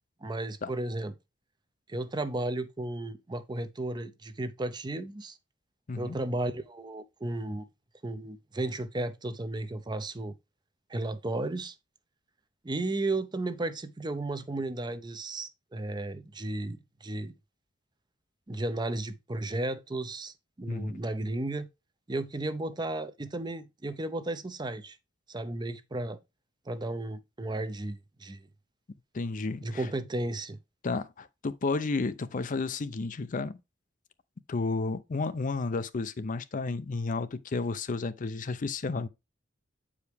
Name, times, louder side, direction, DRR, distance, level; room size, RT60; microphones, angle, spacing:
voice 1, 0.2-1.1 1.9-5.4 5.9-7.7 8.0-10.3 10.9-11.7 12.6-17.3 18.5-21.7 22.1-25.0 25.3-26.2 26.7-28.5 29.6-30.6, right 2 dB, 25° right, 0.6 m, -34 dB
voice 2, 29.1-29.8 30.8-33.6 34.5-39.1, left 3 dB, 45° left, 0.5 m, -32 dB
8.0 x 4.9 x 3.4 m
head